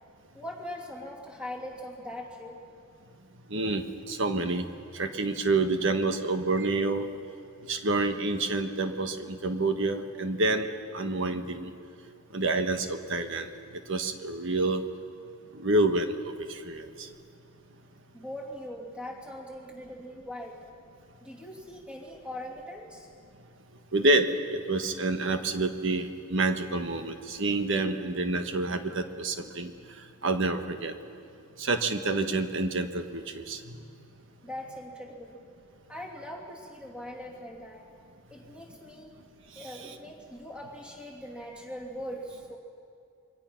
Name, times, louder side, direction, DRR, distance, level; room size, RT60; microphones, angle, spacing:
voice 1, 0.3-2.6 18.1-20.7 21.2-23.1 34.4-35.4 35.9-37.9 38.3-39.2 39.5-42.6, left 1 dB, 5° right, -2 dB, 2.7 m, -41 dB
voice 2, 3.5-4.7 4.9-7.1 7.7-10.7 10.9-11.7 12.3-13.5 13.9-14.8 15.5-17.1 23.9-29.7 30.2-30.9 31.6-33.8 39.6-39.7, right 2 dB, 60° right, 7 dB, 1.4 m, -28 dB
27.5 x 22.5 x 5.9 m, 2.5 s
head